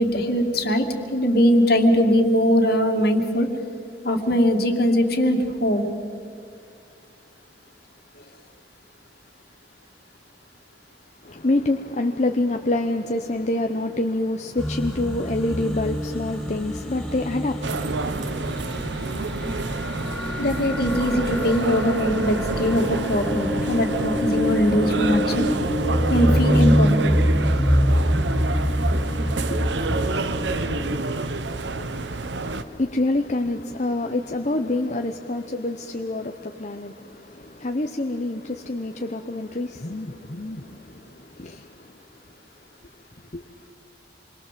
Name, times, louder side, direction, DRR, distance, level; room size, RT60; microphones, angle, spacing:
voice 1, 0.0-3.5 4.0-5.9 20.4-25.5 26.1-27.2, equal, 55° left, 2.4 m, -21 dB
voice 2, 11.2-18.3 29.3-41.7 43.3-43.4, left 2 dB, 40° left, 0.8 m, -27 dB
sound 1, 14.6-31.0, equal, ahead, 4.0 m, -25 dB
sound 2, 17.6-32.6, right 3 dB, 70° right, 0.9 m, -29 dB
27.5 x 22.5 x 7.6 m
head